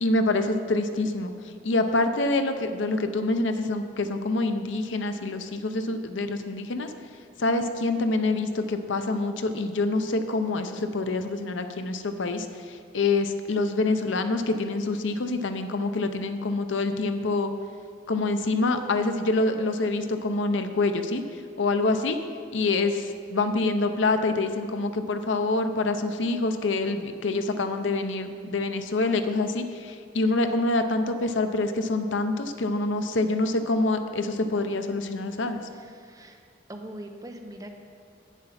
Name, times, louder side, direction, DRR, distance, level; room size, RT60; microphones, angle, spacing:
voice 1, 0.0-6.9 7.4-17.5 18.1-22.2 22.5-35.6, left 2 dB, 80° left, 8 dB, 0.7 m, -26 dB
voice 2, 35.7-36.4 36.7-37.7, right 1 dB, 20° right, 4 dB, 0.6 m, -42 dB
8.9 x 7.3 x 5.7 m, 2.2 s
head